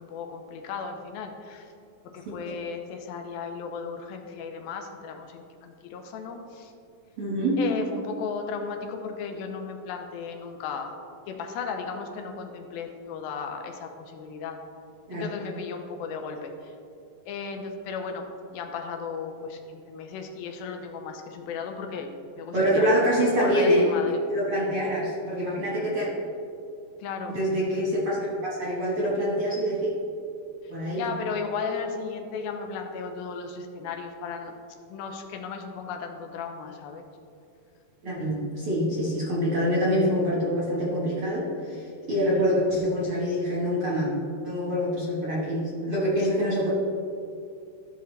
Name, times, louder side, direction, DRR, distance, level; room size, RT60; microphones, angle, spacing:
voice 1, 0.0-1.7 2.0-6.7 7.6-11.0 11.3-14.6 15.1-16.7 17.3-23.0 23.4-24.2 27.0-27.4 30.9-34.5 34.9-37.0 42.2-42.5, left 5 dB, 85° left, 4 dB, 2.6 m, -35 dB
voice 2, 7.2-7.6 15.1-15.2 22.5-23.9 24.3-26.1 27.3-29.9 30.7-31.0 38.0-44.1 44.4-46.7, equal, 55° right, -5 dB, 1.5 m, -25 dB
14.0 x 5.7 x 3.2 m, 2.5 s
omnidirectional pair, 4.2 m